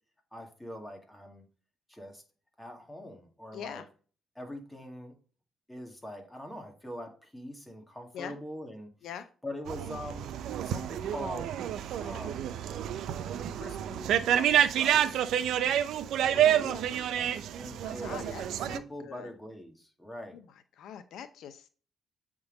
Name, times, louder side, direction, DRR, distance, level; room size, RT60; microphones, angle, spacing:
voice 1, 0.3-1.4 1.9-2.2 2.6-3.8 4.4-5.1 5.7-8.9 9.4-10.3 10.6-11.5 12.0-12.5 13.5-15.2 16.3-17.1 17.6-20.4, left 1 dB, 10° left, 2 dB, 1.9 m, -43 dB
voice 2, 3.5-3.9 8.1-8.3 9.0-9.3 16.2-16.9 17.8-19.3 20.3-20.5 20.8-21.7, left 9 dB, 80° left, 11 dB, 0.6 m, -44 dB
sound 1, 9.7-18.8, right 10 dB, 80° right, 0.5 m, -29 dB
7.9 x 3.7 x 3.8 m, 0.38 s
cardioid pair, 90°, 0 cm